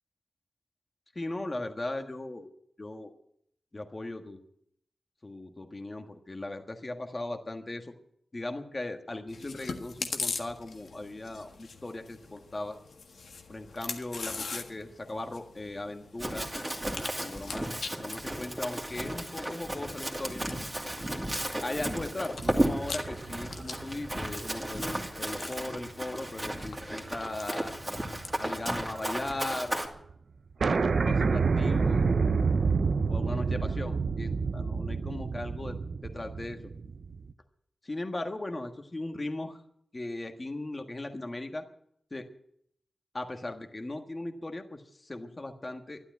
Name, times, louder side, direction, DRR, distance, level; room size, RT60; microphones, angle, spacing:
voice 1, 1.1-2.5 2.8-3.1 3.7-4.4 5.2-7.9 8.3-12.8 13.5-16.5 16.8-17.7 18.0-20.4 21.0-21.3 21.6-27.7 28.4-30.1 30.7-32.4 33.1-35.8 36.0-36.6 37.8-39.6 39.9-41.6 42.1-42.3 43.1-46.0, left 2 dB, 30° left, 5 dB, 1.5 m, -38 dB
Chewing mastication, 9.3-28.8, left 4 dB, 80° left, 1.5 m, -43 dB
Run, 16.2-29.9, right 1 dB, 15° right, 2.5 m, -34 dB
sound 1, 22.4-25.0 25.5-25.6 27.1-27.4 27.7-29.1 29.4-29.5 29.7-29.8 30.1-30.2 30.6-37.3, right 4 dB, 65° right, 0.7 m, -29 dB
13.0 x 12.0 x 9.2 m, 0.70 s
wide cardioid pair, 125°, 0 cm